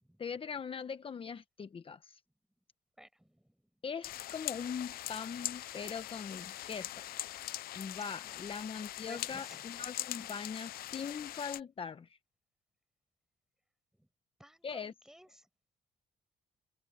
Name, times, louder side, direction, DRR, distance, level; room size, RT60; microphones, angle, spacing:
voice 1, 0.2-2.2 3.8-7.1 7.7-12.1 14.6-14.9, left 6 dB, 30° left, 1.2 m, -41 dB
voice 2, 3.0-3.5 8.2-8.3 9.0-9.6 14.0-14.1 14.4-15.4, equal, 5° right, 6.8 m, -55 dB
sound 1, 4.0-11.6, left 14 dB, 65° left, 0.6 m, -42 dB
cardioid pair, 110°, 17 cm